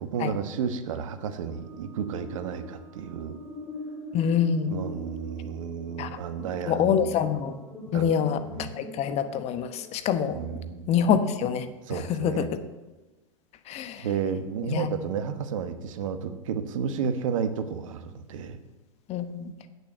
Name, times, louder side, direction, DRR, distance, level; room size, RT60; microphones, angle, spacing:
voice 1, 0.0-3.4 4.7-7.1 7.9-8.1 8.5-8.7 10.3-10.9 11.9-12.5 14.0-18.6, right 7 dB, 70° right, 10 dB, 1.2 m, -32 dB
sound 1, 1.3-10.6, equal, 20° left, 2.6 m, -43 dB
voice 2, 4.1-4.7 6.0-6.1 6.7-7.5 7.9-10.4 10.9-12.5 13.7-14.1 14.7-14.9 19.1-19.5, left 8 dB, 40° left, 10 dB, 1.0 m, -26 dB
8.5 x 6.9 x 8.0 m, 1.1 s
hypercardioid pair, 105°, 17 cm